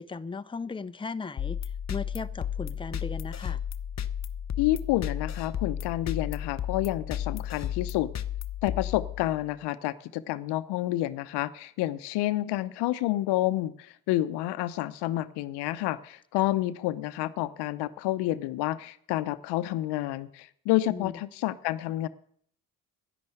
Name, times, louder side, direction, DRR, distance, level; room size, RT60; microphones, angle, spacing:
voice 1, 0.0-3.6 20.9-21.2, left 4 dB, 15° left, 0.7 m, -37 dB
sound 1, 1.4-9.6, left 9 dB, 40° left, 1.0 m, -33 dB
voice 2, 4.6-8.1 8.6-22.1, left 15 dB, 75° left, 0.8 m, -29 dB
10.5 x 10.5 x 7.8 m
supercardioid pair, 60°, 40 cm